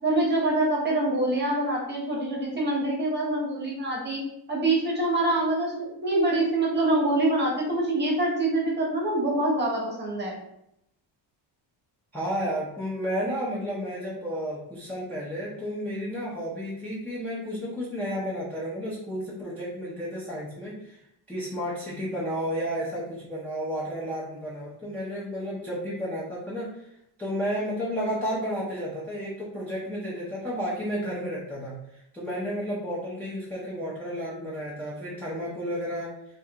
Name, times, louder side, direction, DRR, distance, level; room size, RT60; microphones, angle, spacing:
voice 1, 0.0-4.2 4.5-10.4, right 2 dB, 25° right, -3 dB, 0.8 m, -25 dB
voice 2, 12.1-21.0 21.3-26.8 27.2-36.1, equal, 5° left, -8 dB, 0.4 m, -32 dB
3.2 x 2.3 x 2.7 m, 0.78 s
cardioid pair, 170°, 45 cm